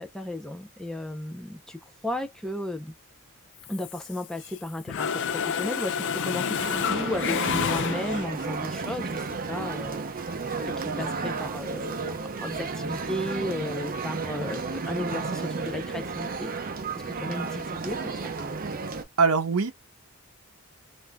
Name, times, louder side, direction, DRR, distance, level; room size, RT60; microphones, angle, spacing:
voice 1, 0.0-2.9 3.7-10.0 10.6-16.7 17.1-18.3, left 1 dB, 5° left, 0.6 m, -35 dB
Mechanisms, 3.6-4.6 4.9-8.4, left 7 dB, 55° left, 0.4 m, -29 dB
sound 1, 6.6-19.0, right 4 dB, 40° right, 0.6 m, -32 dB
voice 2, 19.2-19.7, right 4 dB, 80° right, 0.7 m, -22 dB
3.5 x 2.6 x 2.2 m
head